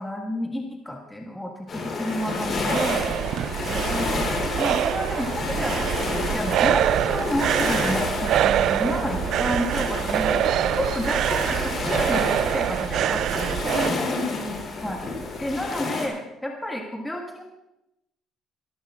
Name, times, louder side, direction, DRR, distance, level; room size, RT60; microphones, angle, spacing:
voice 1, 0.0-3.1 3.9-4.3 4.6-10.3 10.7-13.8 14.8-15.0 15.4-17.4, left 1 dB, 5° left, 0 dB, 1.8 m, -31 dB
sound 1, 1.7-16.1, left 3 dB, 40° left, 3.5 m, -30 dB
sound 2, 2.1-14.0, right 11 dB, 65° right, 0.4 m, -25 dB
voice 2, 3.1-4.1 13.6-14.6, left 1 dB, 60° left, -2 dB, 3.4 m, -34 dB
23.0 x 14.0 x 2.5 m, 0.90 s
cardioid pair, 125°, 0 cm